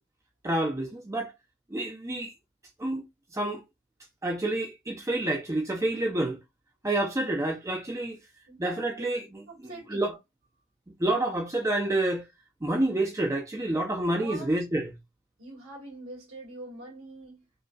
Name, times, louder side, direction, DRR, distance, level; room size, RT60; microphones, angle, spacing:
voice 1, 0.4-1.3 1.7-2.3 2.8-3.0 3.3-3.6 4.2-6.4 6.8-8.2 8.6-9.2 9.6-10.1 11.0-12.3 12.6-14.9, right 1 dB, 15° right, 0.6 m, -28 dB
voice 2, 8.5-9.1 9.5-10.2 14.2-14.6 15.4-17.6, right 2 dB, 80° right, 2.2 m, -44 dB
5.0 x 2.8 x 2.3 m
head